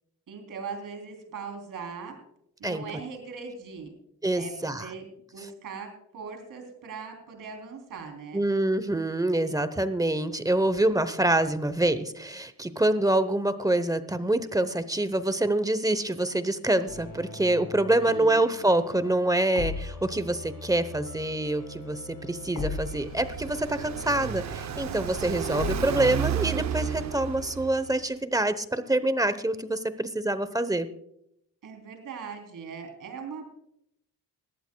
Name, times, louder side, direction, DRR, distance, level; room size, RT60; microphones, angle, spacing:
voice 1, 0.3-2.2 2.6-4.0 4.4-5.0 5.3-8.4 18.0-18.5 31.6-33.4, right 5 dB, 70° right, 3 dB, 3.4 m, -40 dB
voice 2, 4.2-4.9 8.3-30.9, right 1 dB, 10° right, 13 dB, 0.9 m, -26 dB
sound 1, 16.9-25.9, left 4 dB, 75° left, 4.9 m, -39 dB
Car passing by, 22.4-28.0, right 10 dB, 55° right, 0.6 m, -33 dB
20.0 x 14.5 x 2.3 m, 0.75 s
cardioid pair, 110°, 34 cm